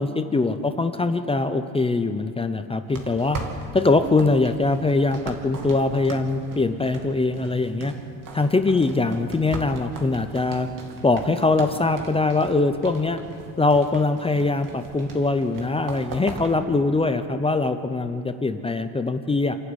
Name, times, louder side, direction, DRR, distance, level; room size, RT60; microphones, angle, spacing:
voice 1, 0.0-3.4 3.7-7.9 8.3-10.7 11.0-13.2 13.6-19.6, left 3 dB, 10° left, 9 dB, 0.7 m, -22 dB
sound 1, 2.9-16.6, right 3 dB, 40° right, 2.8 m, -39 dB
28.0 x 11.5 x 9.8 m, 2.5 s
cardioid pair, 145°, 48 cm